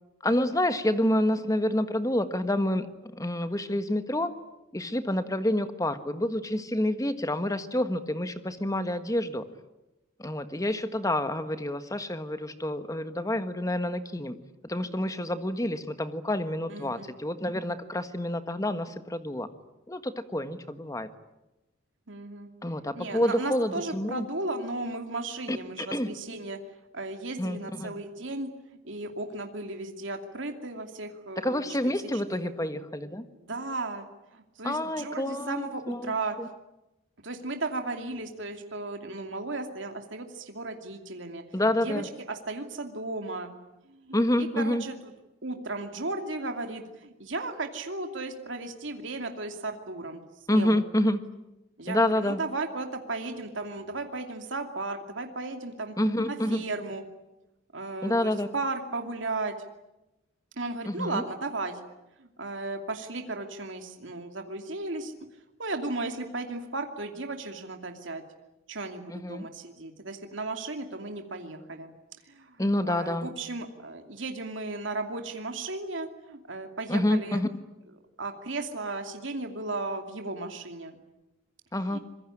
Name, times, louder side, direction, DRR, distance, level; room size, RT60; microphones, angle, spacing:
voice 1, 0.2-2.9 3.1-4.3 4.7-9.4 10.2-14.3 14.6-19.5 19.9-21.1 22.6-24.3 25.5-26.1 27.4-27.9 31.4-33.2 34.6-36.1 36.4-36.5 41.5-42.1 44.1-44.8 50.5-51.2 51.9-52.4 56.0-56.6 58.0-58.5 60.8-61.2 69.1-69.5 72.6-73.3 76.9-77.5 81.7-82.0, left 1 dB, 15° left, 10 dB, 1.5 m, -28 dB
voice 2, 16.7-17.1 22.1-22.5 23.0-26.6 26.9-28.5 28.8-31.6 32.3-32.5 33.4-34.1 34.3-36.4 37.2-41.4 41.8-42.0 42.3-43.5 43.8-44.9 45.4-50.2 50.5-50.7 51.8-55.9 56.3-57.0 57.7-59.6 60.6-61.8 62.2-65.1 65.6-68.2 68.7-71.9 72.3-72.6 72.9-77.4 78.2-81.0 81.9-82.0, right 2 dB, 70° right, 5 dB, 2.7 m, -35 dB
25.5 x 22.5 x 10.0 m, 0.96 s
head